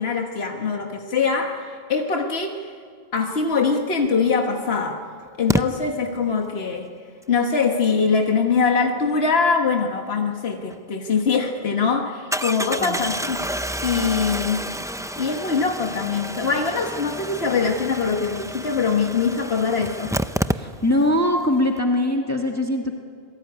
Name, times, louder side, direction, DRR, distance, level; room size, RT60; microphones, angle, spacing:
voice 1, 0.0-2.7 3.1-5.0 5.4-6.9 7.3-13.4 13.8-14.7 15.2-20.1, left 5 dB, 80° left, 3 dB, 1.7 m, -23 dB
Engine starting, 4.0-4.1 5.5-5.6 10.7-10.8 11.1-11.2 12.3-21.1 21.4-21.5 21.7-21.8, right 1 dB, 5° right, 0.5 m, -29 dB
voice 2, 12.7-13.0 20.5-23.0, left 1 dB, 15° left, 2 dB, 1.7 m, -22 dB
27.5 x 20.5 x 9.5 m, 2.2 s
omnidirectional pair, 1.0 m